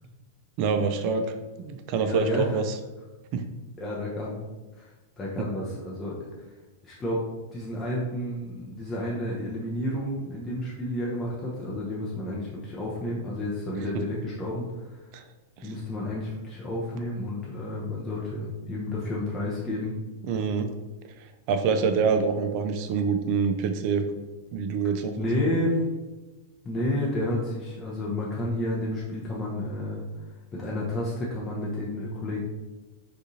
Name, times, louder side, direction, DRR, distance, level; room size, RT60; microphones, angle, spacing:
voice 1, 0.6-2.8 3.3-3.4 15.1-15.2 15.6-15.7 20.2-20.7 21.2-24.1 24.5-25.1, right 5 dB, 45° right, 7 dB, 0.3 m, -26 dB
voice 2, 2.0-2.6 3.8-4.5 4.8-4.9 5.2-6.5 6.8-7.2 7.5-15.1 15.6-19.9 25.2-25.8 26.6-30.0 30.5-32.4, left 1 dB, 20° left, -5 dB, 0.6 m, -31 dB
3.6 x 2.4 x 2.7 m, 1.2 s
figure-of-eight pair, 100°, 0 cm